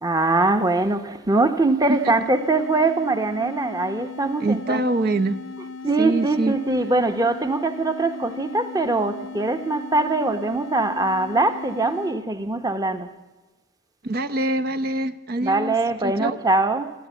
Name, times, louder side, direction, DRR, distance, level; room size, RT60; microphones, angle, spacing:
voice 1, 0.0-4.8 5.8-13.1 15.4-16.9, right 2 dB, 15° right, 1.0 m, -22 dB
sound 1, 1.9-12.3, left 4 dB, 65° left, 0.7 m, -37 dB
voice 2, 4.4-5.4 6.0-6.5 14.0-15.7 16.0-16.4, right 2 dB, 45° right, 0.7 m, -24 dB
26.5 x 14.0 x 8.4 m
head